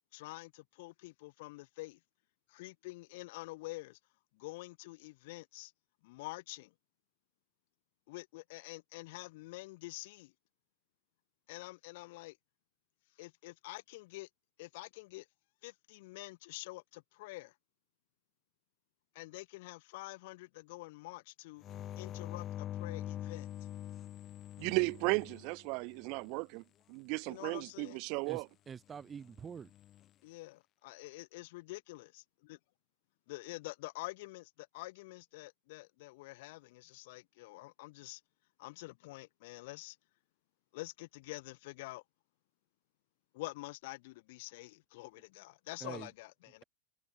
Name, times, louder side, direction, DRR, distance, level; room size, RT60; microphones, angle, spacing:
voice 1, 0.1-2.0 2.5-4.0 4.3-5.7 6.0-6.7 8.1-10.3 11.5-12.4 13.2-14.3 14.6-15.3 15.6-17.5 19.1-21.6 22.0-23.5 27.2-28.0 30.2-32.6 33.3-38.2 38.6-40.0 40.7-42.0 43.3-46.6, left 21 dB, 55° left, 1.2 m, -47 dB
sound 1, 21.6-26.2 29.5-30.1, left 12 dB, 25° left, 1.0 m, -44 dB
voice 2, 24.6-28.5, right 32 dB, 45° right, 0.5 m, -35 dB
voice 3, 28.3-29.7 45.8-46.1, right 7 dB, 15° right, 3.3 m, -46 dB
supercardioid pair, 160°, 0 cm